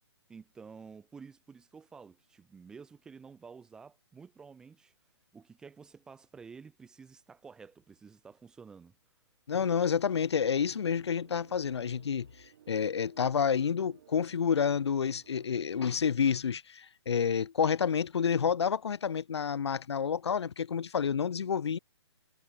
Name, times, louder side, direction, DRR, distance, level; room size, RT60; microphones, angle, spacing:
voice 1, 0.3-4.9 5.3-8.9, right 5 dB, 5° right, 0.9 m, -51 dB
voice 2, 9.5-12.3 12.7-21.8, left 7 dB, 65° left, 1.4 m, -29 dB
sound 1, 10.5-15.7, right 11 dB, 35° right, 2.7 m, -59 dB
hypercardioid pair, 170°, 15 cm